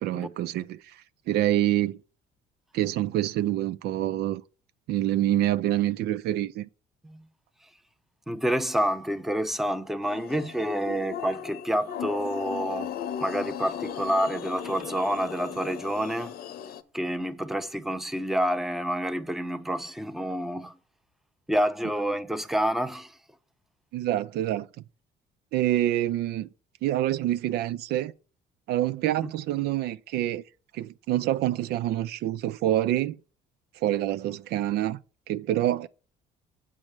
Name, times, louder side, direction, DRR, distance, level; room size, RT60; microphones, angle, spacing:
voice 1, 0.0-1.0 1.3-2.0 2.7-4.4 4.9-6.7 23.9-24.7 25.5-26.5 26.8-28.1 28.7-30.4 30.7-33.2 33.8-35.0 35.3-35.9, right 13 dB, 75° right, 0.4 m, -26 dB
voice 2, 8.3-12.9 13.2-16.3 16.9-20.7 21.5-23.1 29.2-29.3, equal, ahead, 0.6 m, -28 dB
sound 1, 10.0-16.8, left 9 dB, 65° left, 0.8 m, -37 dB
7.5 x 4.7 x 6.5 m
cardioid pair, 110°, 17 cm